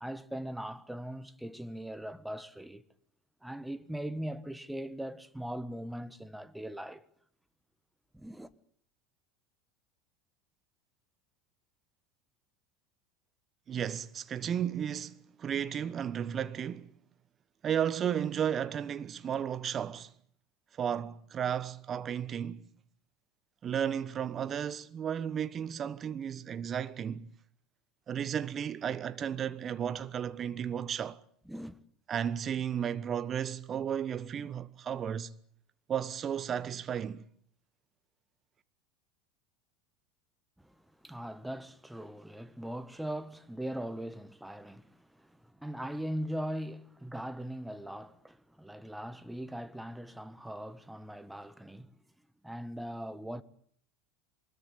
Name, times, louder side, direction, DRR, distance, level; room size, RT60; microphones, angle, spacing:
voice 1, 0.0-2.8 3.4-7.0 8.1-8.5 31.5-31.8 40.6-51.9 52.4-53.4, right 1 dB, 5° right, 1.4 m, -40 dB
voice 2, 13.7-16.9 17.6-20.1 20.8-22.7 23.6-27.3 28.1-31.2 32.1-35.3 35.9-37.2, right 8 dB, 35° right, 1.2 m, -34 dB
23.5 x 21.0 x 8.3 m
hypercardioid pair, 80°, 0 cm